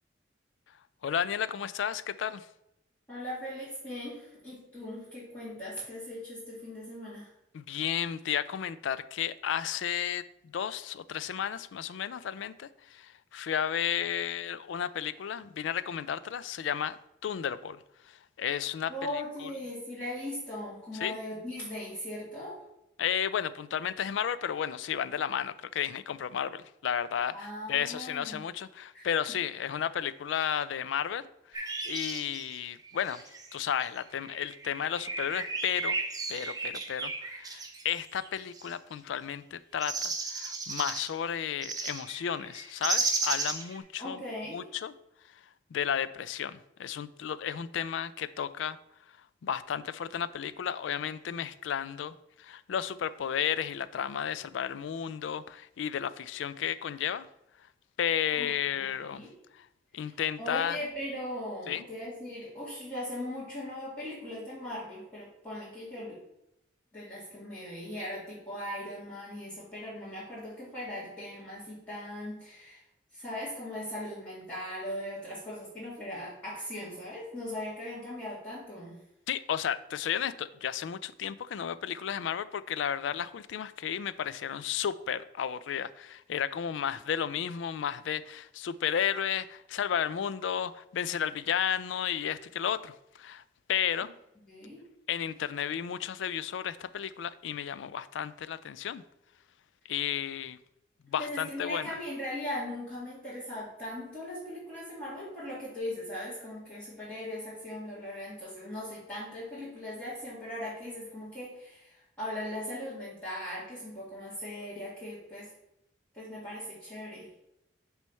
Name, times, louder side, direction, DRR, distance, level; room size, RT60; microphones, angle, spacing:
voice 1, 1.0-2.5 7.5-17.0 17.2-17.8 18.1-18.9 19.4-19.5 20.9-21.2 23.0-33.2 33.5-36.0 36.3-44.2 44.5-44.9 45.7-48.8 49.4-57.3 58.0-59.2 59.6-59.7 59.9-60.8 61.7-61.8 79.3-93.4 93.7-94.1 95.1-99.0 99.9-100.6 101.1-101.9, left 8 dB, 75° left, 0.3 m, -33 dB
voice 2, 3.1-7.3 18.9-22.6 27.3-28.4 28.9-29.1 37.5-37.6 44.0-44.7 58.4-59.3 59.9-60.1 60.4-66.2 66.9-72.8 73.1-79.0 94.5-94.8 101.2-115.5 116.1-117.3, left 1 dB, 10° left, 2.4 m, -39 dB
sound 1, 31.5-33.6 34.1-38.7 39.8-41.1 41.6-43.8, right 3 dB, 20° right, 0.7 m, -34 dB
6.1 x 3.2 x 5.6 m
head